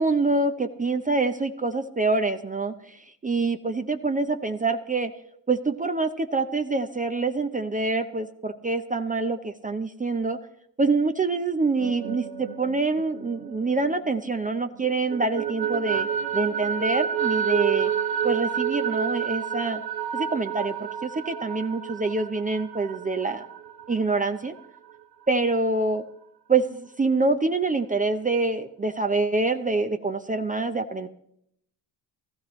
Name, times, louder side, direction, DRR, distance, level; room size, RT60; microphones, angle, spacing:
voice 1, 0.0-5.1 5.5-10.4 10.8-16.1 16.3-17.9 18.2-19.8 20.1-23.5 23.9-24.5 25.3-26.0 26.5-31.1, right 3 dB, 15° right, 7 dB, 0.7 m, -26 dB
sound 1, 11.6-14.5 14.8-24.3, right 8 dB, 50° right, 1.4 m, -29 dB
17.0 x 13.5 x 3.2 m, 0.74 s
hypercardioid pair, 65°, 48 cm